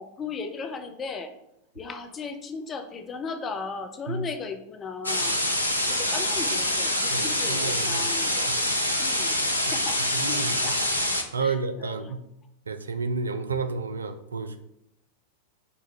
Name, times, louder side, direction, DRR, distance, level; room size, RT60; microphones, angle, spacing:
voice 1, 0.0-1.3 1.8-5.3 6.0-8.5 9.0-9.3 9.7-10.8 11.4-12.1, left 5 dB, 25° left, 6 dB, 0.5 m, -36 dB
sound 1, 5.0-11.2, left 1 dB, 85° left, 0.5 m, -25 dB
voice 2, 7.1-8.1 8.5-8.6 10.1-10.6 11.3-12.2 12.7-14.6, right 4 dB, 75° right, 9 dB, 0.3 m, -31 dB
5.1 x 2.2 x 4.5 m, 0.79 s
figure-of-eight pair, 90°, 0 cm